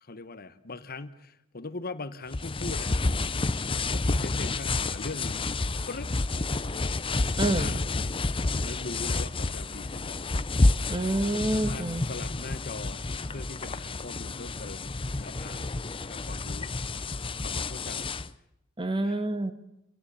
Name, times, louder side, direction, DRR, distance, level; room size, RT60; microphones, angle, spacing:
voice 1, 0.0-3.0 3.9-5.5 5.9-6.1 7.4-8.0 8.6-10.2 10.5-10.7 11.3-13.0 13.3-14.9 15.2-15.7 16.1-16.7 17.4-18.1 19.0-19.2, left 3 dB, 50° left, 13 dB, 1.2 m, -41 dB
sound 1, 2.3-18.3, left 2 dB, 25° left, 0.7 m, -29 dB
voice 2, 7.4-7.8 10.9-12.1 18.8-19.5, right 1 dB, 25° right, 10 dB, 1.5 m, -28 dB
26.5 x 17.5 x 7.0 m, 0.88 s
head